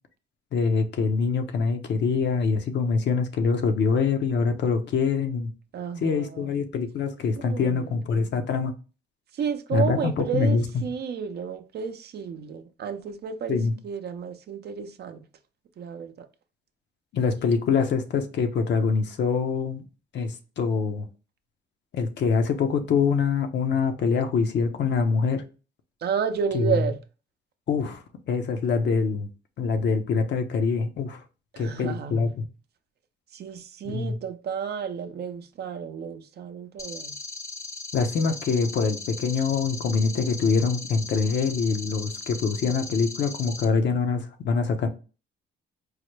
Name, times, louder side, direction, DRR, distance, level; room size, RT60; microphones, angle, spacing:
voice 1, 0.5-5.5 6.0-8.7 9.7-10.8 13.5-13.7 17.1-19.9 20.1-21.1 21.9-25.4 26.5-26.8 27.7-29.3 29.6-31.2 31.6-32.5 33.8-34.2 37.9-44.9, left 5 dB, 65° left, 0.7 m, -24 dB
voice 2, 5.7-6.5 7.4-8.1 9.3-15.3 15.8-16.3 26.0-27.0 31.5-32.3 33.3-37.2, right 7 dB, 55° right, 0.5 m, -31 dB
sound 1, 36.8-43.7, left 3 dB, 15° left, 0.5 m, -38 dB
4.7 x 2.1 x 3.1 m
cardioid pair, 90°, 20 cm